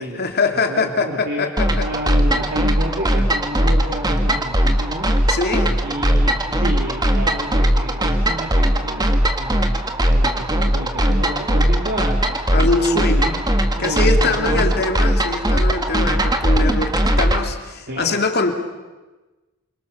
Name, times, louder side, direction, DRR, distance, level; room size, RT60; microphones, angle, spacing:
voice 1, 0.0-1.9 5.3-5.7 12.5-13.3 13.8-18.5, left 3 dB, 50° left, 5 dB, 2.9 m, -22 dB
voice 2, 0.7-5.1 5.8-13.4 13.7-14.8 17.9-18.2, equal, 50° right, -1 dB, 2.9 m, -30 dB
sound 1, 1.6-17.4, equal, 20° right, 1.9 m, -19 dB
28.0 x 25.0 x 6.9 m, 1.2 s
head